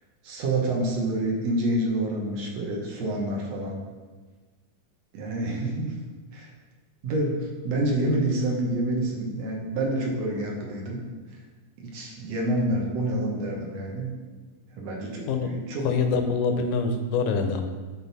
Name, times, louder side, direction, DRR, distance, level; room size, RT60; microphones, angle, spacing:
voice 1, 0.2-3.8 5.1-6.0 6.3-6.5 7.0-11.0 11.8-14.1 14.8-15.9, right 1 dB, 60° right, -1 dB, 2.1 m, -28 dB
voice 2, 15.3-17.7, left 4 dB, 80° left, 6 dB, 2.2 m, -25 dB
10.0 x 3.9 x 4.0 m, 1.3 s
omnidirectional pair, 3.7 m